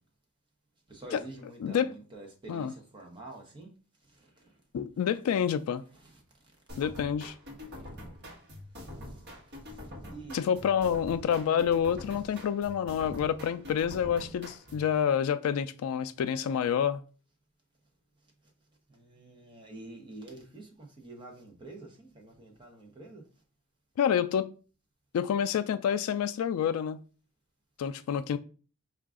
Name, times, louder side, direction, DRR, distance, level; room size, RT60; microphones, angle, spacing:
voice 1, 0.9-3.7 4.1-4.6 5.9-6.2 9.0-9.2 9.6-10.7 18.9-23.2, right 2 dB, 20° right, 0.9 m, -47 dB
voice 2, 1.6-1.9 2.5-2.7 4.7-5.8 6.8-7.3 10.3-17.0 24.0-24.5 25.1-27.0 27.8-28.4, left 8 dB, 85° left, 0.3 m, -28 dB
sound 1, 6.7-14.9, left 1 dB, 50° right, 1.2 m, -45 dB
4.6 x 2.4 x 3.6 m
head